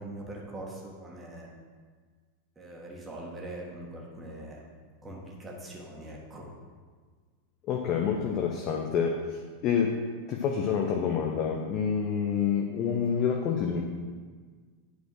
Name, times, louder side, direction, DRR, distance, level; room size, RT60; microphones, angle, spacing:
voice 1, 0.0-1.5 2.6-4.7 5.0-6.5, right 1 dB, 15° right, -3 dB, 1.8 m, -42 dB
voice 2, 7.7-9.9 10.3-13.8, left 7 dB, 35° left, 1 dB, 0.8 m, -28 dB
9.4 x 4.4 x 6.2 m, 1.5 s
figure-of-eight pair, 90°, 0 cm